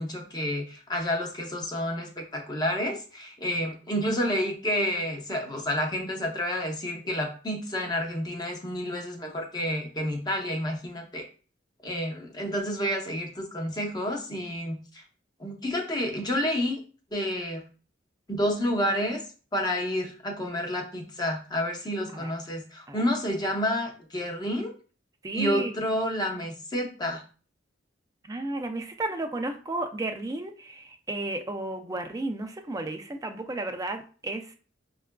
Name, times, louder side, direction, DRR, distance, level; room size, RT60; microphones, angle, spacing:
voice 1, 0.0-11.2 11.8-15.0 15.4-16.8 17.1-17.6 18.3-19.2 19.5-24.7 25.3-27.2, equal, 20° left, 1 dB, 0.7 m, -29 dB
voice 2, 25.2-25.7 28.2-34.5, right 2 dB, 20° right, 6 dB, 0.4 m, -33 dB
5.2 x 2.4 x 2.2 m, 0.38 s
head